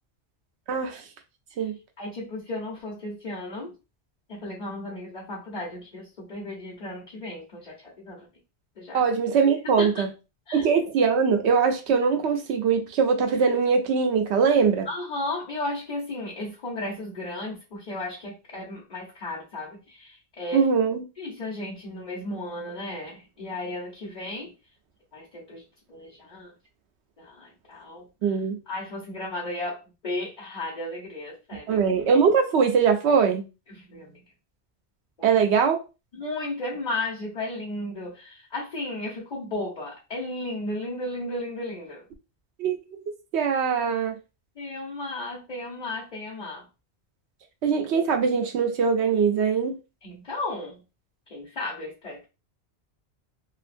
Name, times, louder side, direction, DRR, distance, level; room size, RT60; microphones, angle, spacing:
voice 1, 0.7-1.0 1.6-1.8 8.9-10.1 10.5-14.9 20.5-21.0 28.2-28.6 31.7-33.4 35.2-35.8 42.6-42.8 43.3-44.1 47.6-49.8, right 6 dB, 90° right, 0.9 m, -22 dB
voice 2, 2.0-3.7 4.3-8.3 8.8-9.0 9.8-10.0 10.5-10.7 14.8-20.7 21.2-24.5 25.1-25.6 25.9-26.5 27.2-28.1 28.7-31.8 33.7-34.2 35.2-35.3 36.1-42.0 44.6-46.6 50.0-50.8 51.3-52.3, left 2 dB, 40° left, 1.1 m, -34 dB
2.9 x 2.5 x 2.5 m
omnidirectional pair, 1.1 m